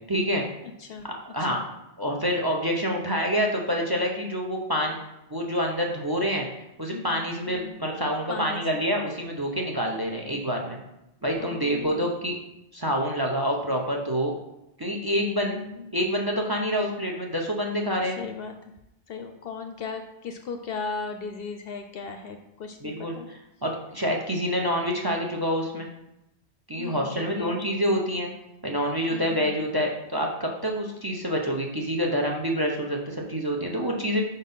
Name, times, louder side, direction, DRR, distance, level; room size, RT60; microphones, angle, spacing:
voice 1, 0.1-0.4 1.3-1.6 2.0-5.0 5.3-6.5 6.8-10.8 11.2-12.3 12.7-14.3 14.8-15.6 15.9-18.2 22.8-25.9 26.7-28.3 28.6-34.2, equal, 25° right, 1 dB, 0.6 m, -27 dB
voice 2, 6.9-7.7 8.3-8.8 11.3-12.1 15.4-15.9 18.0-18.7 19.1-23.3 26.8-27.7 29.1-29.6, left 5 dB, 65° left, 6 dB, 0.7 m, -37 dB
5.1 x 4.1 x 5.4 m, 0.88 s
omnidirectional pair, 1.2 m